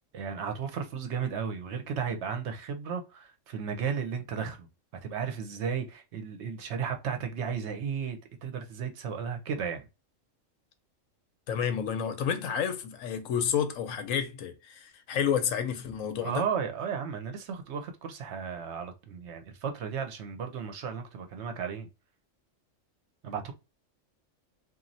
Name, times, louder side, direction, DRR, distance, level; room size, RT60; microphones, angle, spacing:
voice 1, 0.1-4.7 5.0-9.8 16.2-21.9 23.2-23.5, right 6 dB, 65° right, 0.9 m, -34 dB
voice 2, 11.5-16.4, left 8 dB, 90° left, 1.1 m, -30 dB
3.0 x 2.5 x 2.5 m
omnidirectional pair, 1.3 m